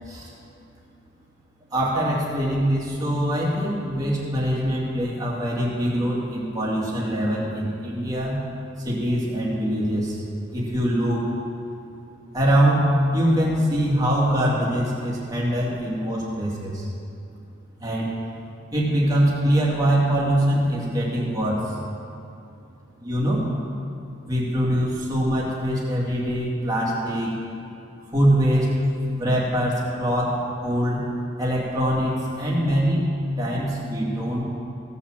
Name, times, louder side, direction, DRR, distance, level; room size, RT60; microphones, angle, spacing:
voice 1, 1.7-8.4 8.8-10.2 10.5-11.2 12.3-12.9 13.1-16.9 17.8-18.1 18.7-21.7 23.0-23.4 24.3-27.3 28.1-28.7 29.1-31.1 31.4-33.1 33.4-34.4, equal, 20° right, -5 dB, 2.5 m, -23 dB
16.5 x 5.8 x 7.5 m, 2.7 s
head